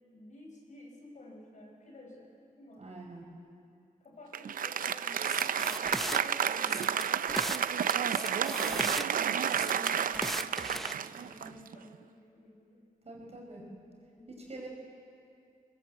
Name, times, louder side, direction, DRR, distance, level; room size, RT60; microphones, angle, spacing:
voice 1, 0.1-2.3 2.6-2.9 4.0-12.8 14.2-14.5, left 2 dB, 65° left, 0 dB, 5.5 m, -51 dB
voice 2, 2.8-3.3 11.4-11.7 13.1-13.6 14.3-14.7, right 2 dB, 50° right, -1 dB, 5.5 m, -46 dB
Applause, 4.3-11.9, right 8 dB, 85° right, 0.5 m, -31 dB
sound 1, 5.2-6.2 6.6-7.6 7.9-9.1 9.5-10.9, equal, ahead, 0.6 m, -37 dB
21.5 x 20.5 x 8.2 m, 2.4 s
wide cardioid pair, 120°, 14 cm